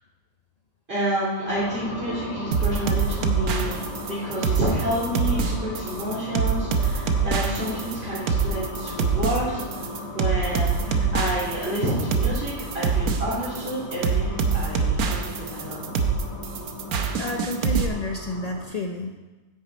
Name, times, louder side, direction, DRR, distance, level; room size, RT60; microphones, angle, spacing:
voice 1, 0.9-3.7 4.0-15.9, right 1 dB, 40° right, -10 dB, 3.3 m, -29 dB
sound 1, 1.4-18.7, left 1 dB, 85° left, 2.9 m, -36 dB
sound 2, 2.5-17.9, right 5 dB, 65° right, 1.3 m, -24 dB
voice 2, 17.1-19.1, left 2 dB, 70° left, 2 dB, 0.3 m, -30 dB
9.5 x 9.4 x 4.2 m, 1.2 s
omnidirectional pair, 1.7 m